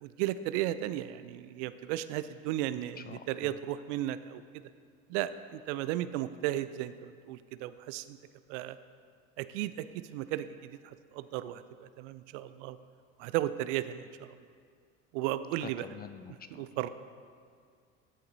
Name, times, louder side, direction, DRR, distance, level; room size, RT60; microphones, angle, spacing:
voice 1, 0.0-4.6 5.1-8.2 8.5-8.8 9.4-12.8 13.2-14.4 15.1-15.9 16.5-16.9, right 13 dB, 65° right, 13 dB, 0.5 m, -35 dB
voice 2, 3.1-3.5 15.6-16.8, left 7 dB, 25° left, 10 dB, 0.4 m, -46 dB
13.0 x 7.7 x 2.7 m, 2.1 s
hypercardioid pair, 65°, 39 cm